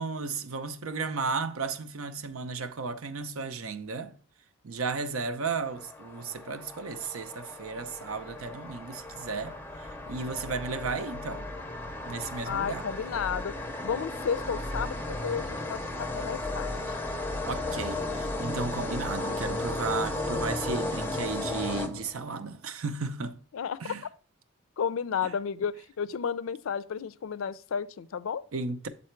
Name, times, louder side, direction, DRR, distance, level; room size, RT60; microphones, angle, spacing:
voice 1, 0.0-4.2 4.6-11.5 12.1-12.9 17.4-23.4 23.8-24.0 25.2-25.3 28.5-28.9, right 4 dB, 85° right, 0.6 m, -34 dB
sound 1, 5.6-22.4, left 2 dB, 10° left, 0.5 m, -35 dB
voice 2, 12.4-13.5 13.8-16.9 19.3-19.6 23.5-23.8 24.8-28.4, left 7 dB, 75° left, 0.4 m, -32 dB
7.5 x 4.1 x 4.4 m
head